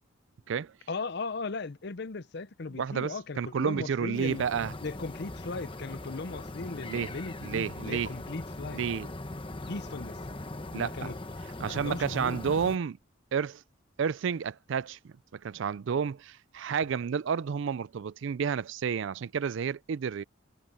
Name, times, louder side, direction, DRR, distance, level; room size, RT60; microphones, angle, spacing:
voice 1, 0.9-4.4 4.8-8.8 9.7-10.2 10.7-11.2 11.6-12.4, left 3 dB, 55° left, 0.6 m, -37 dB
voice 2, 2.8-4.7 6.9-7.1 7.4-8.1 8.7-9.1 10.7-11.1 11.6-13.0 13.3-13.6 14.0-20.2, right 6 dB, 65° right, 0.4 m, -31 dB
sound 1, 4.1-12.8, left 2 dB, 25° left, 1.1 m, -41 dB
head